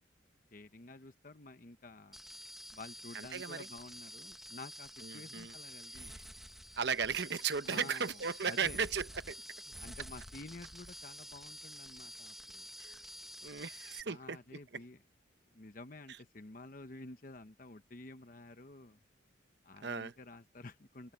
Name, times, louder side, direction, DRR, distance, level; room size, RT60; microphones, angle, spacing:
voice 1, 0.5-2.2 2.7-6.1 7.7-8.2 8.4-8.8 9.8-12.7 14.0-15.0 15.5-19.0 19.6-21.1, left 2 dB, 45° left, 1.0 m, -51 dB
sound 1, 2.1-14.0, equal, ahead, 1.0 m, -49 dB
voice 2, 3.1-3.7 5.0-5.5 5.9-6.2 6.8-9.4 12.8-13.0 13.4-14.4 19.8-20.1, right 6 dB, 65° right, 0.8 m, -36 dB
head